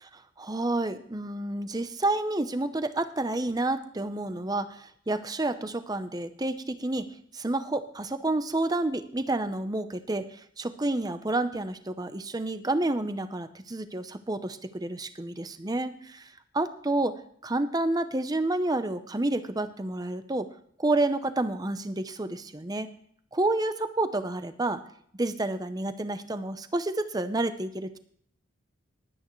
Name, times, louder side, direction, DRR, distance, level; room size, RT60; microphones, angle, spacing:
voice 1, 0.4-7.1 7.3-17.2 17.4-20.5 20.8-22.9 23.3-24.8 25.2-28.0, right 2 dB, 20° right, 10 dB, 0.7 m, -29 dB
19.5 x 9.1 x 3.2 m, 0.64 s
head